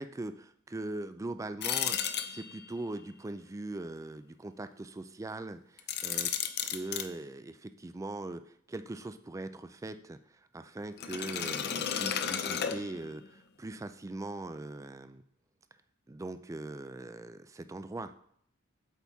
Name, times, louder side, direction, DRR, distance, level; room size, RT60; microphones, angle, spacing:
voice 1, 0.0-6.3 6.6-8.4 8.7-15.2 16.1-18.1, right 2 dB, 15° right, 10 dB, 0.3 m, -41 dB
sound 1, 1.6-2.8 5.8-7.1 11.0-13.3, left 8 dB, 50° left, 0.5 m, -33 dB
8.2 x 4.3 x 3.5 m, 0.66 s
head